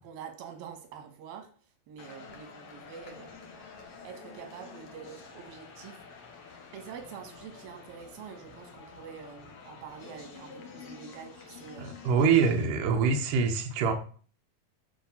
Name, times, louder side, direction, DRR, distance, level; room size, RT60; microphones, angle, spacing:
voice 1, 0.0-3.5 4.0-6.0 6.7-12.0, right 7 dB, 85° right, 5 dB, 3.4 m, -46 dB
sound 1, 2.0-12.7, left 5 dB, 50° left, 2.0 m, -49 dB
voice 2, 11.8-13.9, right 5 dB, 70° right, 3 dB, 2.6 m, -25 dB
9.1 x 4.2 x 7.3 m, 0.42 s
omnidirectional pair, 4.2 m